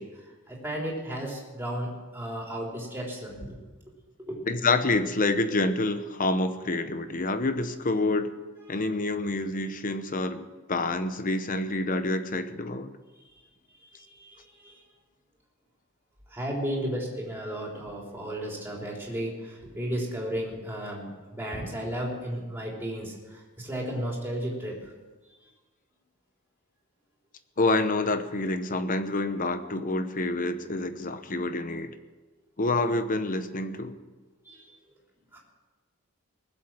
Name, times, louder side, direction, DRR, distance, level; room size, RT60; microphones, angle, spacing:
voice 1, 0.0-3.6 4.2-4.4 8.7-8.9 13.8-14.8 16.3-24.9 34.4-34.8 35.3-35.4, equal, 10° right, -2 dB, 3.5 m, -34 dB
voice 2, 4.5-8.3 8.7-12.9 27.6-31.9 32.6-34.0, left 2 dB, 40° left, 10 dB, 0.9 m, -27 dB
20.0 x 7.8 x 7.4 m, 1.2 s
head